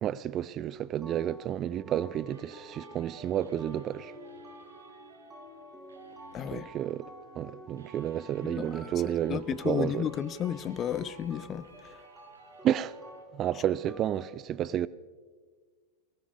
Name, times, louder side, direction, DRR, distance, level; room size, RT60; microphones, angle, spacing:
voice 1, 0.0-4.1 6.4-7.1 7.4-10.1 12.6-13.0 13.3-14.9, right 11 dB, 30° right, 0.3 m, -31 dB
sound 1, 0.6-14.3, equal, 10° right, 2.8 m, -50 dB
sound 2, 2.1-13.2, right 4 dB, 70° right, 1.6 m, -57 dB
voice 2, 6.3-6.7 8.4-8.8 9.3-12.0, left 9 dB, 30° left, 0.5 m, -33 dB
19.5 x 17.5 x 3.5 m
figure-of-eight pair, 90°, 0 cm